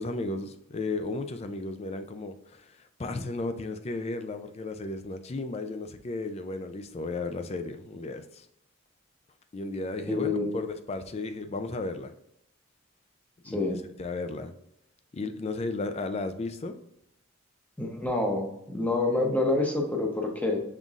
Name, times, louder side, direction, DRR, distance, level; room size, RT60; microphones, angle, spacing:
voice 1, 0.0-8.5 9.5-12.1 13.4-14.5 15.1-16.8, left 3 dB, 30° left, 9 dB, 0.3 m, -34 dB
voice 2, 10.1-10.5 13.4-13.8 17.8-20.6, left 2 dB, 5° left, 1 dB, 0.7 m, -27 dB
5.5 x 3.7 x 2.4 m, 0.79 s
head